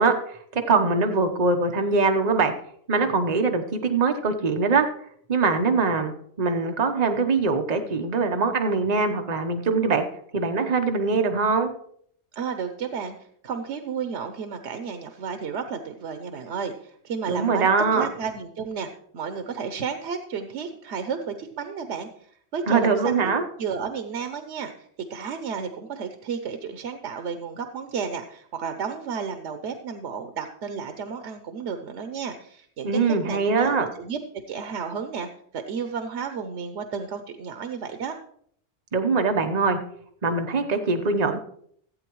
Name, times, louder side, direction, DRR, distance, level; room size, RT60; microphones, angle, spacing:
voice 1, 0.0-2.5 2.9-4.9 5.3-6.1 6.4-10.0 10.3-11.7 17.3-18.1 22.7-23.4 32.8-33.9 38.9-39.8 40.2-41.4, right 4 dB, 40° right, 5 dB, 1.0 m, -22 dB
voice 2, 12.3-23.3 23.6-34.2 34.5-35.3 35.5-38.2, right 6 dB, 85° right, 8 dB, 1.0 m, -32 dB
15.5 x 8.3 x 3.1 m, 0.64 s
omnidirectional pair, 1.2 m